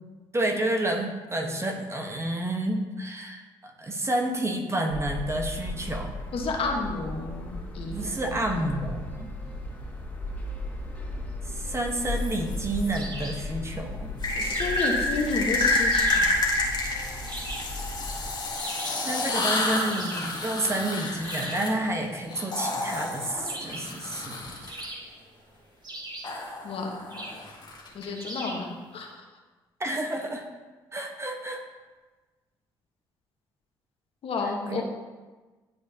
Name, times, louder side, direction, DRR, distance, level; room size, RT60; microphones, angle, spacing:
voice 1, 0.3-6.1 7.9-9.3 11.4-14.1 19.0-24.9 29.8-30.4 30.9-31.6 34.7-34.8, right 1 dB, 25° right, 2 dB, 1.1 m, -30 dB
sound 1, 4.9-18.3, left 1 dB, 10° left, 2.0 m, -36 dB
voice 2, 6.3-8.1 8.5-8.6 14.3-16.4 26.6-27.2 27.9-29.2 34.2-34.8, left 3 dB, 55° left, 1 dB, 1.3 m, -31 dB
sound 2, 12.0-12.9 14.2-24.8 26.2-28.1, left 2 dB, 40° left, 1.6 m, -29 dB
sound 3, 12.9-13.5 14.5-15.1 15.9-16.4 17.3-17.8 18.5-19.1 19.9-20.4 21.2-21.7 23.5-24.0 24.7-25.3 25.8-26.4 27.1-27.5 28.2-28.7, right 2 dB, 40° right, 1.8 m, -39 dB
10.5 x 4.9 x 2.8 m, 1.3 s
hypercardioid pair, 50°, 11 cm